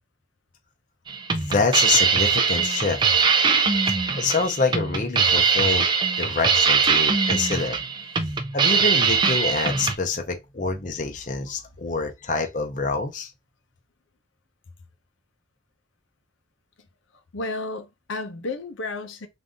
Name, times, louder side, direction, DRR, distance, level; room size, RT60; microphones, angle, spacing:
sound 1, 1.1-10.0, right 5 dB, 25° right, 0.4 m, -21 dB
voice 1, 1.4-3.0 4.2-5.9 6.2-7.8 8.5-13.3, left 4 dB, 40° left, 0.7 m, -26 dB
voice 2, 17.3-19.3, left 2 dB, 80° left, 0.7 m, -32 dB
3.8 x 2.6 x 3.5 m
head